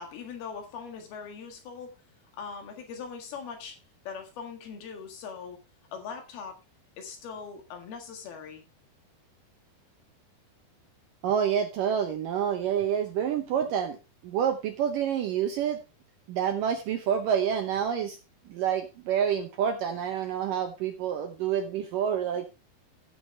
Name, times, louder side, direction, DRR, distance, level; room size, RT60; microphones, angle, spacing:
voice 1, 0.0-1.9 2.4-3.8 4.1-5.6 5.9-6.6 7.0-8.6, left 6 dB, 65° left, 4 dB, 3.6 m, -41 dB
voice 2, 11.2-14.0 14.2-15.8 16.3-18.2 18.5-22.5, right 8 dB, 70° right, 5 dB, 2.1 m, -28 dB
15.0 x 7.2 x 3.3 m, 0.27 s
omnidirectional pair, 4.9 m